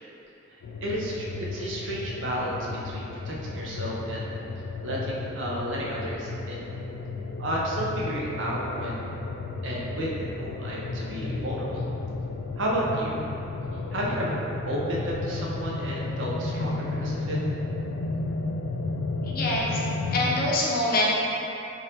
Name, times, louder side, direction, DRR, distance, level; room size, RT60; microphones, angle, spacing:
sound 1, 0.6-20.5, left 3 dB, 90° left, 0.3 m, -33 dB
voice 1, 0.8-2.6 2.8-4.3 4.8-6.6 7.4-9.1 9.6-11.8 12.6-13.2 13.9-14.4 14.7-17.4, right 1 dB, 75° right, -4 dB, 0.7 m, -31 dB
voice 2, 19.2-19.8 20.1-21.0, left 2 dB, 50° left, -4 dB, 0.7 m, -25 dB
4.0 x 2.5 x 4.0 m, 2.9 s
head